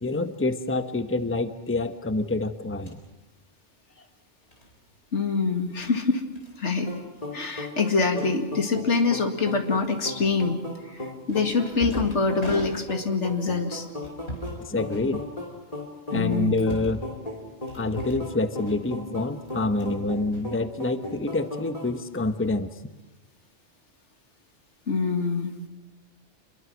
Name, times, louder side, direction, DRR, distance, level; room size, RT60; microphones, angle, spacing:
voice 1, 0.0-3.0 14.7-15.2 16.1-17.0 17.7-22.7, left 2 dB, 10° left, 9 dB, 0.9 m, -27 dB
sound 1, 2.7-3.0 4.5-4.7 5.6-5.9 6.3-6.5 6.8-7.0 7.3-7.4 8.1-9.1 10.2-10.6 11.3-13.2 14.0-14.6 14.9-15.6 16.1-17.1 17.7-18.3 18.6-19.1 19.4-20.0 20.3-21.1, right 1 dB, 65° left, 5.4 m, -40 dB
voice 2, 5.1-6.2 6.6-6.9 7.3-10.6 10.9-13.8 16.1-16.7 24.9-25.6, left 4 dB, 85° left, 5 dB, 2.4 m, -25 dB
sound 2, 6.9-22.0, left 1 dB, 30° left, 3.2 m, -37 dB
27.0 x 22.0 x 6.3 m, 1.1 s
omnidirectional pair, 1.2 m